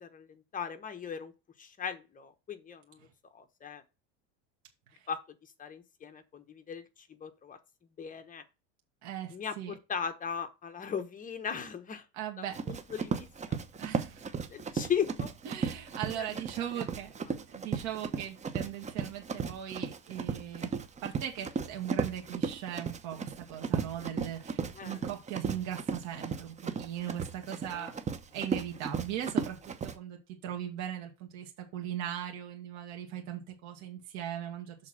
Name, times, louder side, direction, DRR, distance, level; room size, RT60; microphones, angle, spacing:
voice 1, 0.0-1.3 1.6-3.1 3.3-3.8 5.1-7.6 8.0-8.4 9.3-12.0 12.4-13.6 14.5-15.3 16.1-16.3 24.7-25.0 27.7-28.0, left 7 dB, 25° left, 1.1 m, -38 dB
voice 2, 9.0-9.7 12.1-12.6 13.8-14.3 15.5-17.1 17.5-20.7 21.0-27.9 28.3-34.8, right 10 dB, 65° right, 1.8 m, -39 dB
Run, 12.5-29.9, right 5 dB, 20° right, 0.8 m, -35 dB
6.6 x 3.6 x 5.9 m
supercardioid pair, 125°, 33 cm